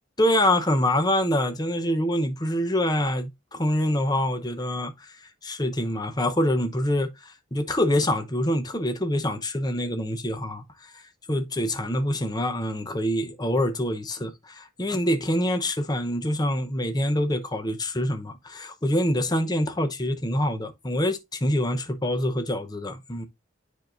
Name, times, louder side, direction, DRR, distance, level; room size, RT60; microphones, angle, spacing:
voice 1, 0.2-5.1 5.4-11.0 11.3-23.3, left 1 dB, 20° left, 0.8 m, -25 dB
9.4 x 4.6 x 2.5 m
head